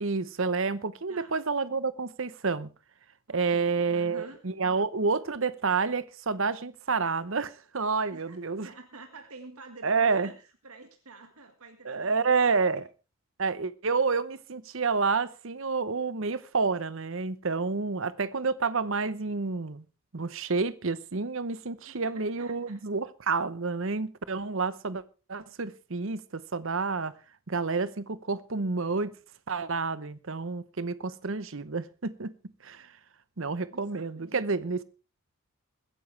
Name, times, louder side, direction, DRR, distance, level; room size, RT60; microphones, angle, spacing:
voice 1, 0.0-2.7 3.3-8.7 9.8-10.3 11.8-12.8 13.4-19.8 20.1-25.0 25.3-27.1 27.5-29.1 29.5-32.3 32.6-32.9 33.4-34.8, right 4 dB, 65° right, 0.9 m, -29 dB
voice 2, 1.1-1.4 3.3-4.4 8.1-12.2 12.5-12.6 21.6-22.8 33.5-34.5, right 3 dB, 85° right, 1.8 m, -49 dB
22.5 x 10.0 x 3.3 m
head